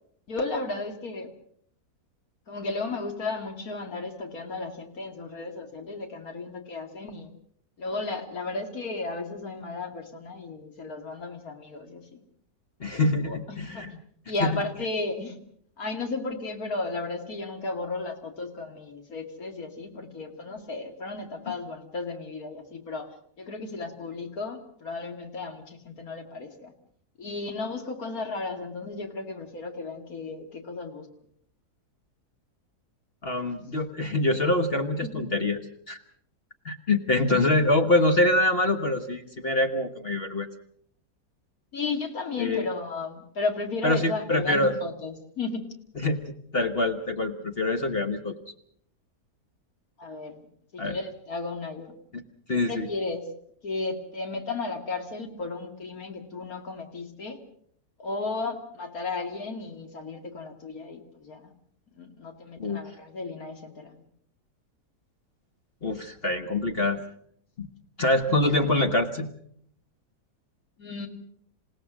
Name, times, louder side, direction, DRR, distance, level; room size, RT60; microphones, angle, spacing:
voice 1, 0.3-1.3 2.5-7.3 7.8-12.2 13.3-13.9 14.3-15.4 15.8-23.1 23.4-26.7 27.2-31.1 35.0-35.3 41.7-45.7 50.0-50.5 50.7-51.9 52.5-53.3 53.6-57.4 58.0-61.5 61.9-64.0 70.8-71.1, left 3 dB, 60° left, 4 dB, 2.8 m, -34 dB
voice 2, 12.8-13.9 14.4-14.6 33.2-35.6 35.9-36.0 36.6-40.5 42.4-42.7 43.8-44.7 46.0-48.3 50.8-51.0 52.1-52.2 52.5-52.9 62.6-62.8 65.8-67.0 67.6-67.7 68.0-69.3, left 2 dB, 40° left, 6 dB, 1.4 m, -25 dB
28.0 x 17.0 x 6.2 m, 0.67 s
omnidirectional pair, 1.7 m